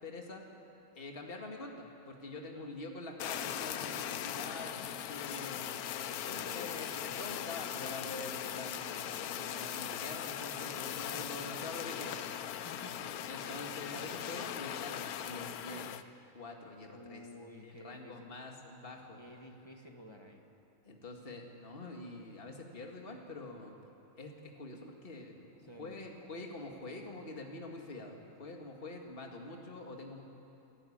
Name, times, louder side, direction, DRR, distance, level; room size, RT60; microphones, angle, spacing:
voice 1, 0.0-0.4 0.9-5.7 6.2-12.5 13.3-16.0 16.3-17.3 17.6-19.2 20.8-23.8 24.2-30.2, left 2 dB, 35° left, 2 dB, 2.1 m, -45 dB
Fire, 3.2-16.0, left 10 dB, 70° left, 1.1 m, -39 dB
voice 2, 6.0-6.6 9.5-9.9 11.0-11.5 12.6-13.3 16.9-18.3 19.1-20.4 25.6-26.0, left 1 dB, 15° left, 3 dB, 1.6 m, -52 dB
29.5 x 12.0 x 8.7 m, 2.8 s
omnidirectional pair, 1.7 m